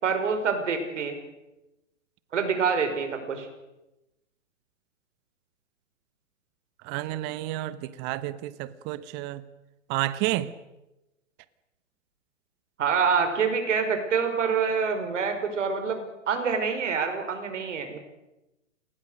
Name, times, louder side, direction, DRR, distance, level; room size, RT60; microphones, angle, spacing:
voice 1, 0.0-1.2 2.3-3.5 12.8-18.0, right 6 dB, 70° right, 5.7 m, -26 dB
voice 2, 6.8-9.4 9.9-10.5, right 15 dB, 30° right, 1.0 m, -30 dB
28.5 x 20.0 x 6.6 m
hypercardioid pair, 130°, 38 cm